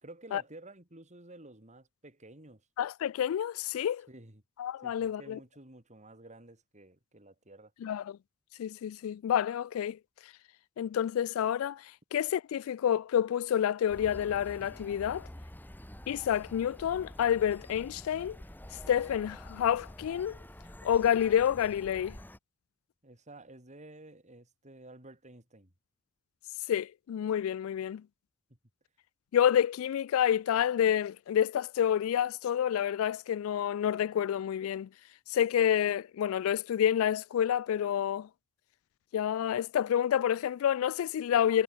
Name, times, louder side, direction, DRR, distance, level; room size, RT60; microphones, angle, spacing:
voice 1, 0.0-2.7 4.1-4.4 4.8-7.7 23.0-25.7, right 2 dB, 35° right, 4.7 m, -52 dB
voice 2, 2.8-4.1 4.6-5.4 7.8-8.2 8.6-10.0 10.8-15.3 16.1-18.4 18.9-20.4 20.8-22.2 26.7-28.0 29.3-34.9 35.3-38.3 39.1-41.6, left 9 dB, 85° left, 0.3 m, -28 dB
sound 1, 13.9-22.4, left 1 dB, 10° left, 1.4 m, -48 dB
head